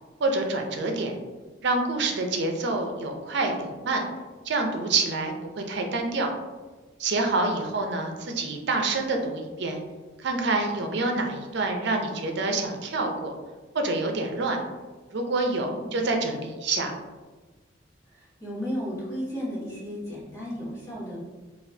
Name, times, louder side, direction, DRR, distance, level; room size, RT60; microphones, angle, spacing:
voice 1, 0.2-1.2 1.6-4.0 4.4-6.3 7.0-9.8 10.2-13.4 13.7-14.6 15.1-16.9, right 3 dB, 65° right, 3 dB, 0.5 m, -27 dB
voice 2, 18.1-21.2, equal, 15° left, -9 dB, 1.4 m, -34 dB
4.0 x 2.4 x 2.7 m, 1.3 s
head